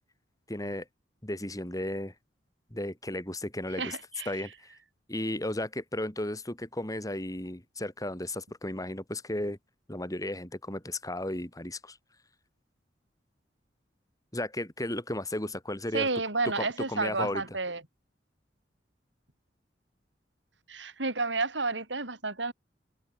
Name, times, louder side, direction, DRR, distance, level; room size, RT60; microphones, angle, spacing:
voice 1, 0.5-0.9 1.2-2.1 2.7-4.0 4.3-4.7 5.1-9.6 9.9-12.0 14.3-16.1 16.4-17.6, left 1 dB, 20° left, 3.8 m, -34 dB
voice 2, 3.8-4.3 15.9-17.8 20.7-22.5, right 3 dB, 85° right, 5.2 m, -31 dB
open air
head